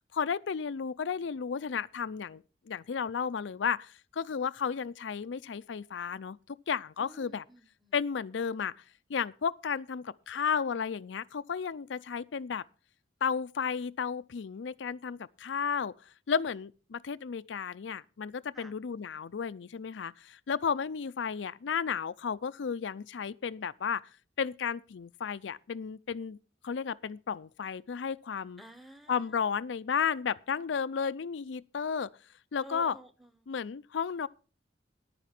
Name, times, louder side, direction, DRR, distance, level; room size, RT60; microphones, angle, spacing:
voice 1, 0.1-7.4 7.9-8.7 9.1-12.6 13.2-15.9 16.3-24.0 24.4-26.4 26.6-28.6 29.1-32.1 32.5-33.0 33.5-34.3, left 6 dB, 85° left, 0.5 m, -33 dB
voice 2, 7.0-7.9 18.5-18.7 28.6-29.1 32.6-33.3, equal, ahead, 1.0 m, -50 dB
10.5 x 9.2 x 5.9 m
head